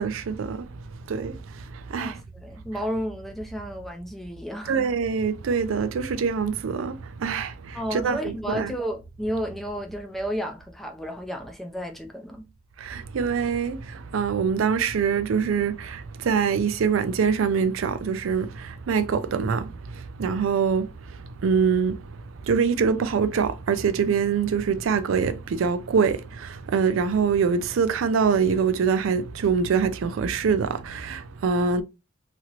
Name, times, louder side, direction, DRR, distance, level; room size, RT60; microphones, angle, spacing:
voice 1, 0.0-2.2 4.7-8.7 12.8-31.8, right 6 dB, 90° right, 0.4 m, -25 dB
voice 2, 2.0-4.8 7.7-12.5, equal, ahead, 0.5 m, -32 dB
3.0 x 2.9 x 2.4 m
head